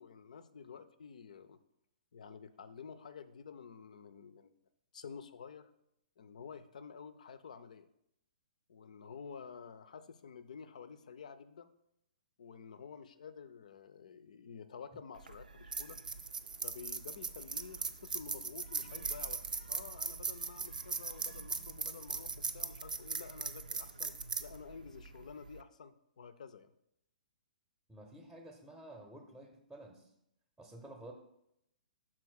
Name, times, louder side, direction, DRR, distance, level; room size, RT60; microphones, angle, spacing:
voice 1, 0.0-1.6 2.1-4.6 4.9-5.7 6.2-7.9 8.7-11.7 12.4-16.0 16.6-26.7, left 6 dB, 55° left, 13 dB, 0.5 m, -50 dB
sound 1, 15.2-25.6, right 4 dB, 70° right, 0.5 m, -40 dB
voice 2, 27.9-30.1 30.6-31.1, right 1 dB, 5° right, 3 dB, 0.8 m, -51 dB
6.0 x 4.4 x 6.3 m, 0.80 s
figure-of-eight pair, 115°, 5 cm